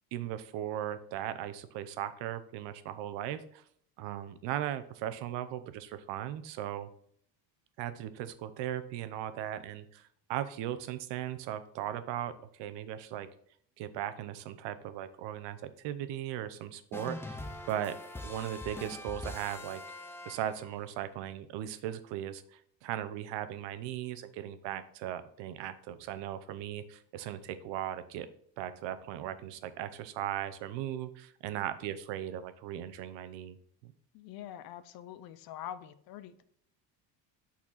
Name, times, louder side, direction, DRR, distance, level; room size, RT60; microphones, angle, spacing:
voice 1, 0.1-3.6 4.0-6.9 7.8-13.3 13.8-17.4 17.7-18.0 18.2-19.8 20.3-28.3 28.6-33.6, right 11 dB, 80° right, 12 dB, 0.8 m, -38 dB
sound 1, 16.9-20.8, left 2 dB, 5° left, 0.3 m, -43 dB
voice 2, 34.1-36.4, left 11 dB, 60° left, 13 dB, 0.6 m, -45 dB
8.6 x 4.3 x 4.1 m, 0.63 s
cardioid pair, 160°, 42 cm